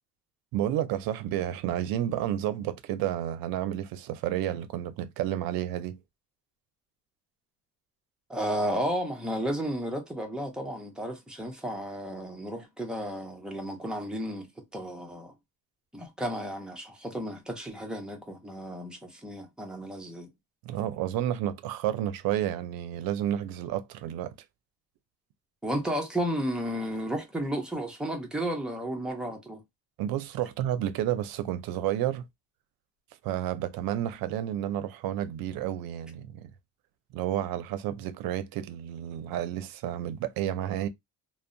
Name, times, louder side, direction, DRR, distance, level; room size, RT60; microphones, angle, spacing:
voice 1, 0.5-6.0 20.6-24.3 30.0-32.2 33.2-36.5 37.1-40.9, right 12 dB, 80° right, 0.5 m, -31 dB
voice 2, 8.3-15.3 15.9-20.3 25.6-29.6, equal, ahead, 0.5 m, -33 dB
2.6 x 2.0 x 2.5 m
cardioid pair, 150°, 35 cm